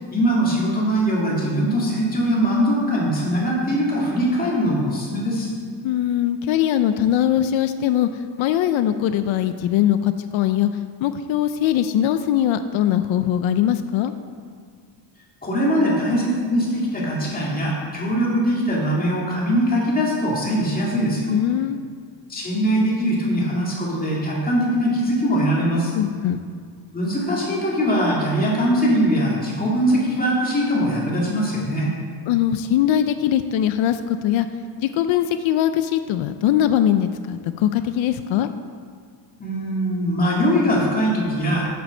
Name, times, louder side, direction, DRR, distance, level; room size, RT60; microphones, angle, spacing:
voice 1, 0.1-5.5 15.4-21.3 22.3-25.9 26.9-31.9 39.4-41.7, equal, 20° left, -5 dB, 2.2 m, -21 dB
voice 2, 5.8-8.1 8.4-10.7 11.0-14.1 21.3-21.8 25.9-26.4 32.3-34.5 34.8-38.5, left 11 dB, 80° left, 10 dB, 0.6 m, -21 dB
7.9 x 7.6 x 6.5 m, 2.1 s
cardioid pair, 175°, 46 cm